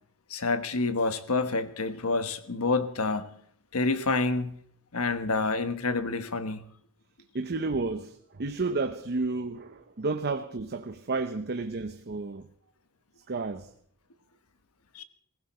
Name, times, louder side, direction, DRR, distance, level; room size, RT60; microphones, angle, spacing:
voice 1, 0.3-3.4 3.7-4.6 4.9-6.6 14.9-15.0, left 3 dB, 80° left, 1.2 m, -28 dB
voice 2, 7.3-12.5 13.3-13.7, right 3 dB, 50° right, 0.7 m, -31 dB
19.0 x 16.0 x 4.3 m
head